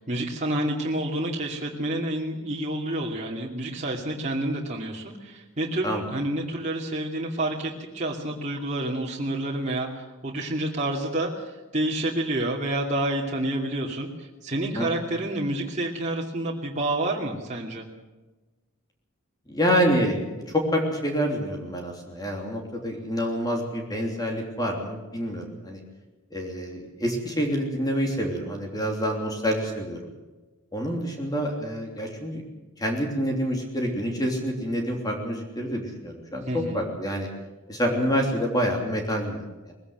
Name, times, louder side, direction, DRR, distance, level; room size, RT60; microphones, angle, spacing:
voice 1, 0.0-17.9 36.5-36.8, right 1 dB, 35° right, -3 dB, 2.6 m, -29 dB
voice 2, 19.5-20.2 20.5-25.8 26.3-30.0 30.7-32.4 32.8-37.3 37.7-39.7, equal, 20° left, 2 dB, 3.3 m, -27 dB
21.0 x 16.0 x 8.0 m, 1.2 s
head